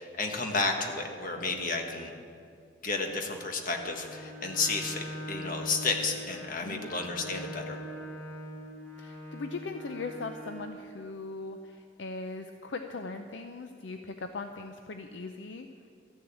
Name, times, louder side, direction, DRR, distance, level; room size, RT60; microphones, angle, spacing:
voice 1, 0.0-2.1 2.8-7.8, left 3 dB, 50° left, 3 dB, 1.4 m, -32 dB
Bowed string instrument, 3.7-10.8, equal, 10° left, 3.0 m, -42 dB
voice 2, 9.0-15.7, left 3 dB, 70° left, 6 dB, 0.6 m, -39 dB
14.0 x 7.0 x 8.9 m, 2.4 s
head